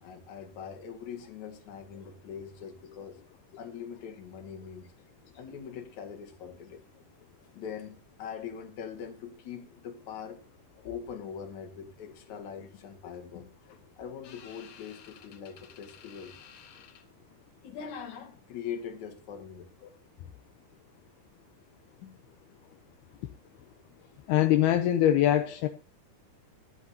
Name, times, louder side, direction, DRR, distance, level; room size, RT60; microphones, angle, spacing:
voice 1, 0.0-3.2 3.6-4.9 5.4-6.8 7.5-10.4 10.8-17.0 17.6-19.7 22.0-22.2, left 7 dB, 50° left, 5 dB, 3.1 m, -42 dB
voice 2, 24.3-25.7, left 12 dB, 80° left, 7 dB, 2.7 m, -23 dB
24.5 x 8.6 x 2.8 m, 0.34 s
omnidirectional pair, 4.7 m